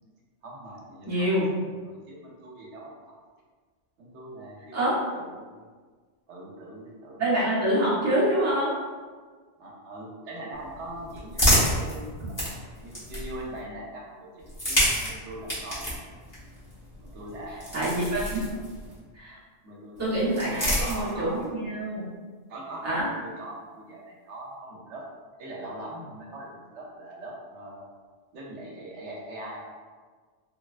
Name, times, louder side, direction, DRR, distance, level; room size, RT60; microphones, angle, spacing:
voice 1, 0.4-3.0 4.0-5.7 6.3-7.2 9.6-12.3 12.8-16.0 17.0-17.7 18.5-18.7 19.6-20.1 20.5-21.4 22.5-25.0 25.4-27.8 28.3-29.7, right 1 dB, 80° right, -2 dB, 0.9 m, -41 dB
voice 2, 1.1-1.5 4.7-4.9 7.2-8.7 17.7-18.5 19.1-19.4 20.0-22.1 22.8-23.1, right 1 dB, 15° right, -8 dB, 0.6 m, -26 dB
sound 1, 10.5-13.6 14.4-19.0 20.0-21.4, equal, 20° left, 0.9 m, -29 dB
3.3 x 2.2 x 2.3 m, 1.5 s
omnidirectional pair, 1.2 m